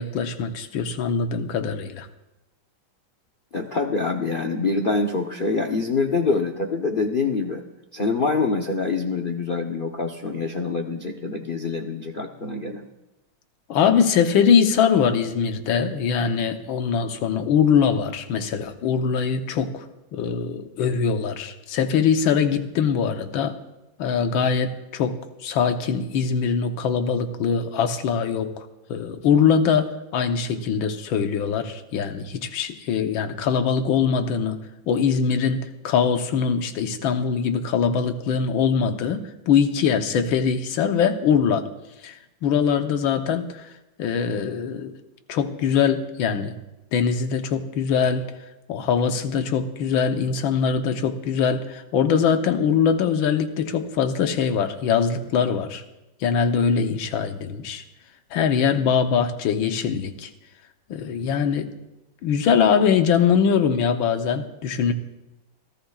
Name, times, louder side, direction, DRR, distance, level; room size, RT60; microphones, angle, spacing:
voice 1, 0.0-2.1 13.7-19.8 20.1-23.6 24.0-34.6 34.9-41.6 42.0-42.1 42.4-43.7 44.0-44.9 45.3-46.5 46.9-48.3 48.7-55.8 56.2-57.8 58.3-60.3 60.9-61.7 62.2-64.9, left 6 dB, 85° left, 7 dB, 1.7 m, -22 dB
voice 2, 3.5-7.6 7.9-12.9, left 4 dB, 55° left, 4 dB, 0.5 m, -25 dB
28.5 x 13.0 x 2.4 m, 0.98 s
omnidirectional pair, 2.1 m